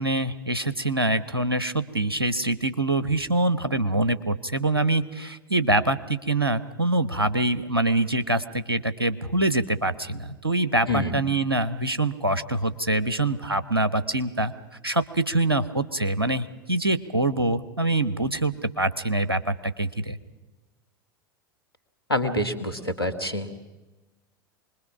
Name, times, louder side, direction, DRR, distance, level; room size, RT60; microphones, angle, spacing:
voice 1, 0.0-14.5 14.8-20.2, right 2 dB, 90° right, 12 dB, 1.1 m, -25 dB
voice 2, 10.9-11.2 22.1-23.5, left 1 dB, 90° left, 7 dB, 1.9 m, -26 dB
25.5 x 21.0 x 6.0 m, 1.2 s
figure-of-eight pair, 85°, 12 cm